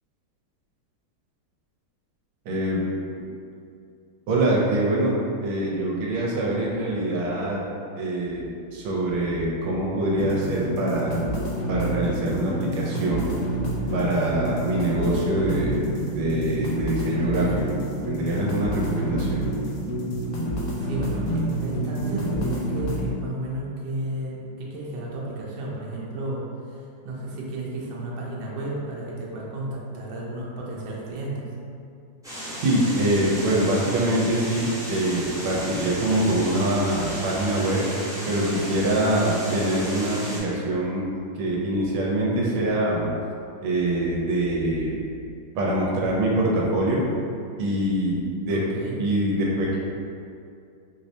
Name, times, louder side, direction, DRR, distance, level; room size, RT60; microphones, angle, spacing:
voice 1, 2.4-2.8 4.3-7.7 8.0-11.2 11.7-13.3 13.9-15.8 16.1-17.8 18.1-19.5 32.6-37.8 38.2-41.1 41.3-43.1 43.6-45.0 45.5-47.0 47.6-48.6 49.0-49.8, right 1 dB, 85° right, -4 dB, 1.5 m, -24 dB
sound 1, 10.2-23.1, right 1 dB, 80° left, 0.8 m, -28 dB
voice 2, 20.8-26.4 26.7-26.8 27.0-31.4 48.5-49.0, right 1 dB, 70° right, -4 dB, 1.3 m, -33 dB
sound 2, 32.2-40.4, equal, 5° right, 0.3 m, -34 dB
4.7 x 2.1 x 2.7 m, 2.5 s
omnidirectional pair, 2.3 m